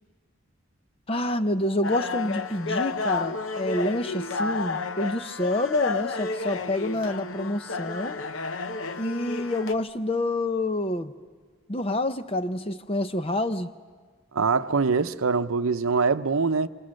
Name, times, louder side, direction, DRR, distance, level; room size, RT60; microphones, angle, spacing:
voice 1, 1.1-8.2 9.0-11.1 11.7-13.7, left 1 dB, 25° left, 0.7 m, -28 dB
sound 1, 1.8-9.8, left 4 dB, 70° left, 0.8 m, -31 dB
voice 2, 14.3-16.7, right 4 dB, 90° right, 0.7 m, -23 dB
26.5 x 26.5 x 6.5 m
head